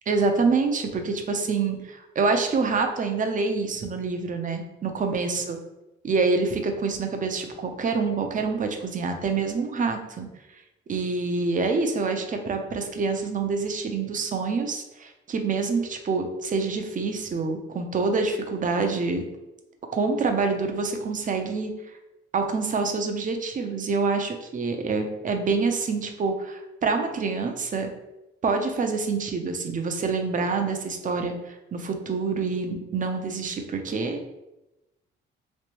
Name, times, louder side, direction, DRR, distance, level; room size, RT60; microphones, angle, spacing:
voice 1, 0.1-5.6 6.0-10.3 10.9-19.2 19.9-21.7 22.3-27.9 28.4-34.3, right 4 dB, 40° right, 5 dB, 0.6 m, -26 dB
3.2 x 3.2 x 3.0 m, 0.96 s
cardioid pair, 90°, 20 cm